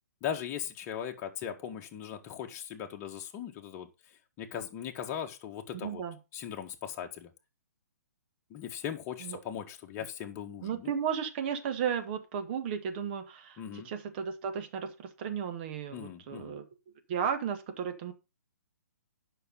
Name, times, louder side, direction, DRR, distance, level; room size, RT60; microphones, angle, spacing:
voice 1, 0.2-3.9 4.4-6.0 6.3-7.3 8.5-10.9 13.6-13.9 15.9-16.6, left 9 dB, 25° left, 4 dB, 1.6 m, -39 dB
voice 2, 5.8-6.2 9.2-9.4 10.6-13.6 13.9-16.7 17.1-18.1, right 7 dB, 40° right, 7 dB, 1.8 m, -34 dB
10.5 x 5.9 x 5.4 m, 0.28 s
figure-of-eight pair, 125°, 9 cm